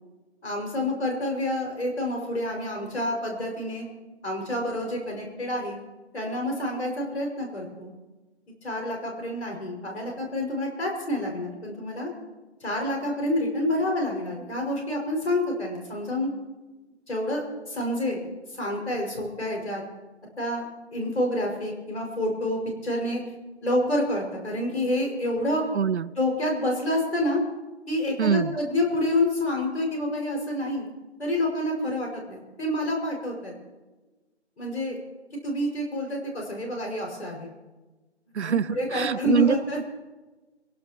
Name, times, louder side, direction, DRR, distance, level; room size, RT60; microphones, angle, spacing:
voice 1, 0.4-3.8 4.2-5.8 6.1-7.9 8.6-12.1 12.6-16.3 17.1-18.3 18.5-19.8 20.4-23.2 23.6-25.6 26.2-27.4 27.9-30.9 31.2-33.5 34.6-35.0 35.4-37.5 38.4-39.8, left 1 dB, 70° left, 0 dB, 6.0 m, -28 dB
voice 2, 25.7-26.1 28.2-28.5 38.3-39.5, right 7 dB, 75° right, 21 dB, 0.5 m, -24 dB
24.0 x 17.0 x 3.0 m, 1.2 s
figure-of-eight pair, 150°, 34 cm